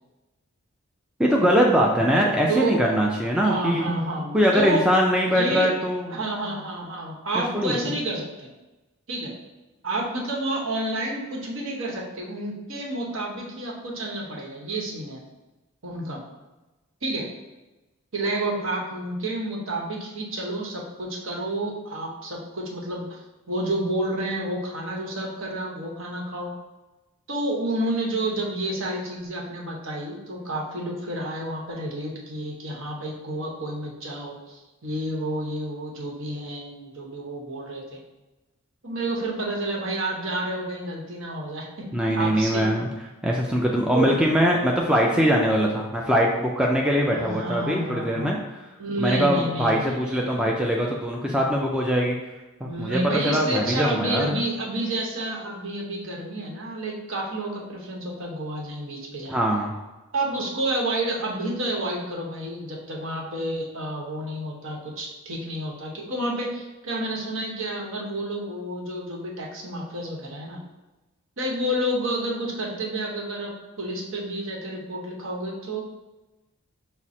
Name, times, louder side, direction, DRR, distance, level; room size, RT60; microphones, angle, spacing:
voice 1, 1.2-3.9 4.3-6.1 7.5-7.8 41.9-42.9 43.2-48.4 49.0-52.2 52.6-53.0 53.2-54.4 59.3-59.7, equal, 5° right, -2 dB, 0.3 m, -22 dB
voice 2, 2.5-2.8 3.4-4.8 5.3-5.7 6.1-8.5 9.1-9.3 9.8-15.2 15.8-16.2 17.0-17.3 18.1-23.2 23.5-26.5 27.3-38.0 38.8-41.9 42.2-42.6 43.9-44.1 47.1-48.3 48.8-50.5 52.6-59.4 60.1-70.6 71.4-75.8, right 1 dB, 65° right, -2 dB, 0.9 m, -30 dB
5.9 x 2.0 x 4.2 m, 1.1 s
head